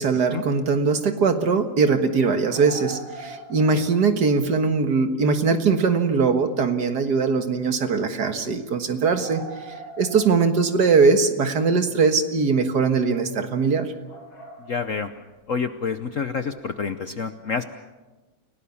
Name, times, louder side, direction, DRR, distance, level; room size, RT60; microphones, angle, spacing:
voice 1, 0.0-13.9, right 4 dB, 55° right, 7 dB, 2.0 m, -21 dB
sound 1, 2.5-4.1 4.5-4.6 5.7-5.8 6.3-6.4 6.6-6.7 9.0-11.3 14.1-15.0 16.5-16.6, right 2 dB, 85° left, 4.0 m, -41 dB
voice 2, 14.6-15.1 15.5-17.6, left 5 dB, 55° left, 9 dB, 1.0 m, -28 dB
29.5 x 18.0 x 7.1 m, 1.2 s
omnidirectional pair, 2.2 m